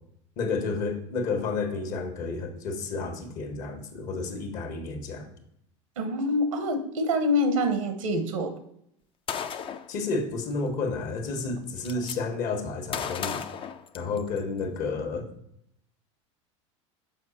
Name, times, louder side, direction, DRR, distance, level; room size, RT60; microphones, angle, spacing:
voice 1, 0.4-5.3 9.9-13.4 13.9-15.3, left 4 dB, 55° left, 6 dB, 1.4 m, -31 dB
voice 2, 6.0-8.5 11.9-12.0, left 1 dB, 85° right, 9 dB, 1.1 m, -26 dB
Gunshot gunfire, 9.3-9.9 11.1-11.2 11.5-12.2 12.9-14.4, left 7 dB, 30° left, 0.5 m, -34 dB
6.4 x 4.9 x 4.2 m, 0.73 s
hypercardioid pair, 90°, 16 cm